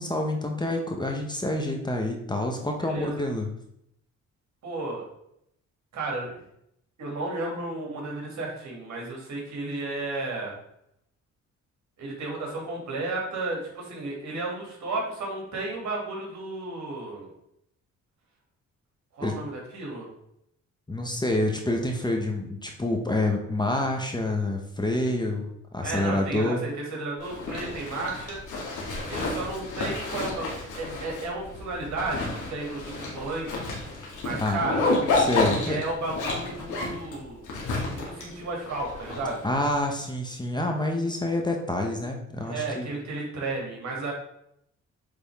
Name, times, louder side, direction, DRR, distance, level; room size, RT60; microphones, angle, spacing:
voice 1, 0.0-3.5 19.2-19.3 20.9-26.6 34.3-34.6 35.2-35.8 39.4-42.9, left 1 dB, 15° left, 2 dB, 1.0 m, -27 dB
voice 2, 2.8-3.2 4.6-5.0 5.9-6.4 7.0-10.6 12.0-17.3 19.1-20.1 25.8-28.4 29.1-33.9 34.2-34.8 35.5-37.4 37.9-39.5 42.4-44.1, right 2 dB, 65° right, -1 dB, 2.4 m, -33 dB
Zipper (clothing), 27.2-39.7, left 2 dB, 80° left, 2.0 m, -30 dB
8.4 x 3.5 x 3.5 m, 0.75 s
cardioid pair, 90°, 30 cm